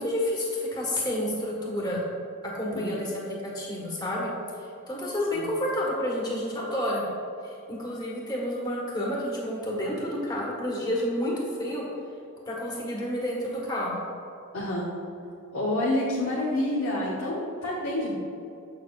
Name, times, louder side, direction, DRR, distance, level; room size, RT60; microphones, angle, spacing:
voice 1, 0.0-2.0 2.4-3.1 3.5-4.3 4.9-7.0 7.4-11.8 12.5-14.0, left 1 dB, 20° left, -3 dB, 1.4 m, -29 dB
voice 2, 14.5-14.9 15.5-18.2, left 1 dB, 70° left, -5 dB, 1.0 m, -28 dB
7.3 x 6.8 x 2.4 m, 2.6 s
head